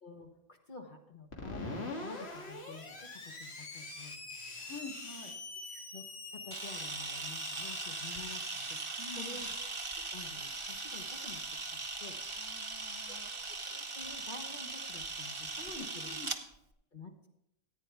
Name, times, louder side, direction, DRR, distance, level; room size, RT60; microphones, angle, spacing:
voice 1, 0.0-4.8 5.7-6.0 6.3-8.8 9.2-9.5 9.9-11.4 11.7-12.2 13.1-13.2 13.6-16.2 16.9-17.1, left 3 dB, 50° left, 3 dB, 1.3 m, -49 dB
Screech, 1.3-11.8, left 2 dB, 90° left, 1.9 m, -45 dB
voice 2, 4.6-5.4 9.0-9.4 12.4-13.3 15.7-16.3, left 3 dB, 20° left, 3 dB, 1.1 m, -48 dB
Camera, 6.5-16.4, right 3 dB, 30° right, 0.9 m, -40 dB
14.5 x 9.2 x 3.5 m, 0.80 s
omnidirectional pair, 1.1 m